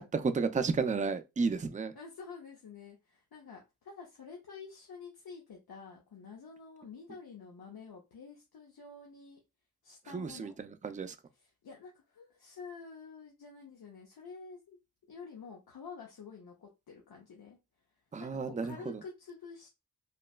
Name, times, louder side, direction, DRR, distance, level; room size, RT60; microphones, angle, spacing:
voice 1, 0.0-1.9 10.1-11.2 18.1-19.0, right 4 dB, 20° right, 0.3 m, -32 dB
voice 2, 1.9-9.4 9.8-10.5 11.3-14.8 15.1-17.6 18.2-19.7, left 5 dB, 85° left, 0.7 m, -49 dB
3.0 x 2.1 x 2.3 m
cardioid pair, 50°, 36 cm